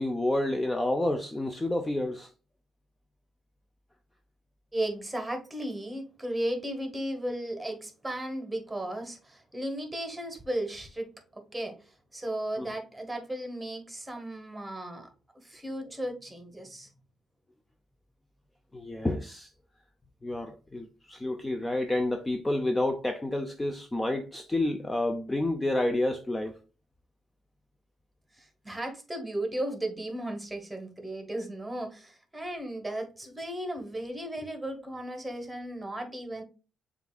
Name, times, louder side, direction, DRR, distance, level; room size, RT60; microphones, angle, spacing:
voice 1, 0.0-2.3 12.6-12.7 18.7-19.5 20.2-26.5, left 1 dB, 15° left, 0.5 m, -29 dB
voice 2, 4.7-15.1 15.4-16.9 28.4-36.4, right 1 dB, 10° right, 1.2 m, -35 dB
6.9 x 2.5 x 2.3 m
cardioid pair, 90°, 0 cm